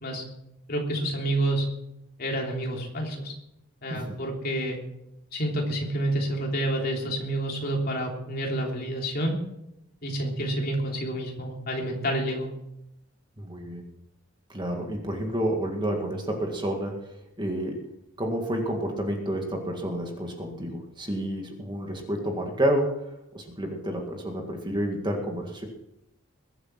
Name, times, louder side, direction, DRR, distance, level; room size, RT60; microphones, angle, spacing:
voice 1, 0.7-1.7 2.2-3.3 3.8-4.8 5.3-9.3 10.0-12.5, right 1 dB, 45° left, 0 dB, 3.4 m, -28 dB
voice 2, 13.4-13.8 14.5-17.8 18.2-23.1 23.3-25.7, right 1 dB, 20° right, 2 dB, 2.0 m, -30 dB
21.5 x 8.1 x 6.0 m, 0.84 s
head